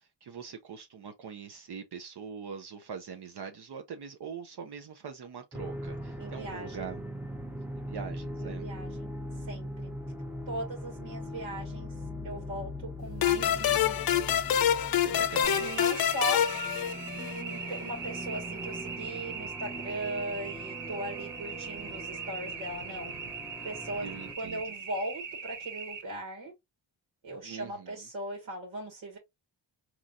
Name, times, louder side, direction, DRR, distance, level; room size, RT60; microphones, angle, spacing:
voice 1, 0.0-7.0 7.8-8.7 15.0-15.7 21.7-22.2 24.0-24.7 27.4-28.1, right 6 dB, 55° right, 0.8 m, -43 dB
sound 1, 5.5-24.4, equal, 5° right, 0.7 m, -41 dB
voice 2, 6.2-6.9 8.4-9.1 9.4-9.9 10.5-11.9 12.2-14.2 15.6-16.5 17.1-23.1 23.6-24.1 24.4-26.5 27.2-29.2, right 1 dB, 90° right, 1.8 m, -38 dB
sound 2, 13.2-17.6, left 10 dB, 50° left, 0.6 m, -27 dB
sound 3, 15.4-26.0, right 5 dB, 75° right, 1.2 m, -40 dB
3.9 x 3.0 x 2.4 m
cardioid pair, 85°, 46 cm